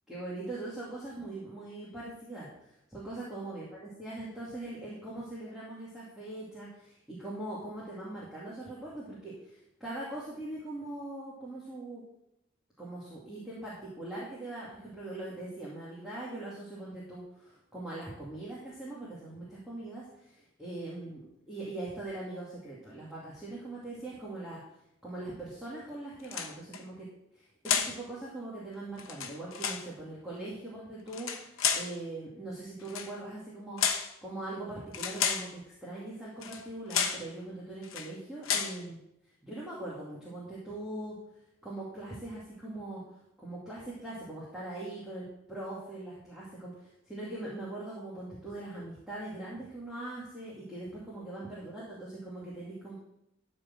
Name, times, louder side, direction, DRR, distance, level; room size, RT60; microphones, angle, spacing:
voice 1, 0.1-3.7 4.0-12.0 12.8-21.2 21.5-24.6 25.0-27.1 27.3-39.0 39.4-41.1 41.6-52.9, right 2 dB, 5° right, -8 dB, 2.4 m, -41 dB
sound 1, 26.2-26.8 27.6-28.0 29.0-29.9 31.1-31.9 32.8-33.1 33.8-34.1 34.9-35.5 36.4-36.6 36.9-37.3 37.8-38.1 38.4-38.8, left 7 dB, 85° left, 1.1 m, -31 dB
12.5 x 4.5 x 7.4 m, 0.81 s
head